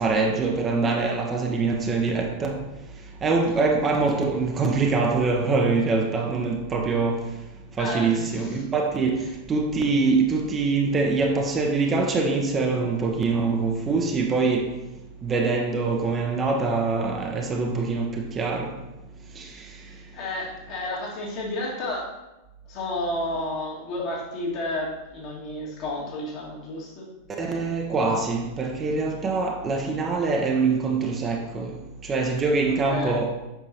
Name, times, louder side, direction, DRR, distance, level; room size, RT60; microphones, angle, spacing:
voice 1, 0.0-2.6 3.2-7.2 7.8-9.2 9.5-14.7 15.2-18.7 19.4-19.5 27.4-31.7 32.0-33.3, right 4 dB, 20° right, 0.8 m, -24 dB
voice 2, 7.8-8.6 20.1-22.1 22.7-27.1 32.7-33.2, left 1 dB, 40° left, 2.0 m, -31 dB
8.0 x 5.9 x 2.9 m
figure-of-eight pair, 90°, 0 cm